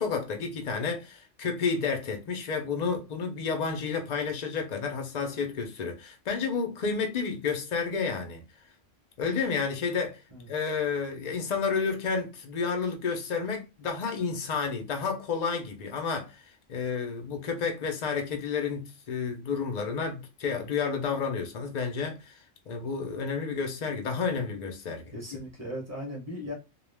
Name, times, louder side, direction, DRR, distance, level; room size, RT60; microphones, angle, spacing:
voice 1, 0.0-8.4 9.2-10.2 10.5-16.4 16.7-22.4 22.7-25.0, left 5 dB, 55° left, 0.5 m, -31 dB
voice 2, 25.1-26.5, equal, 15° right, 0.8 m, -37 dB
2.3 x 2.1 x 3.3 m
omnidirectional pair, 1.3 m